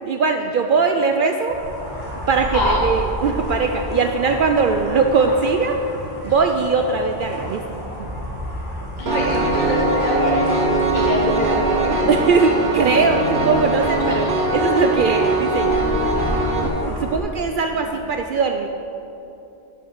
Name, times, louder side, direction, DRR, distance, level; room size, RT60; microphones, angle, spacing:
voice 1, 0.0-1.6 2.3-5.8 6.2-7.6 8.0-8.1 12.1-15.7 16.9-18.7, right 4 dB, 60° right, 5 dB, 0.6 m, -20 dB
sound 1, 1.5-17.2, equal, 20° right, 1.7 m, -31 dB
voice 2, 2.5-2.8 9.0-10.6 10.9-11.9 12.4-12.5 14.1-14.5 17.7-18.0, left 1 dB, 45° left, -3 dB, 1.2 m, -24 dB
Piano, 9.1-16.7, right 2 dB, 85° right, 1.5 m, -21 dB
8.8 x 6.8 x 6.4 m, 2.9 s
omnidirectional pair, 1.1 m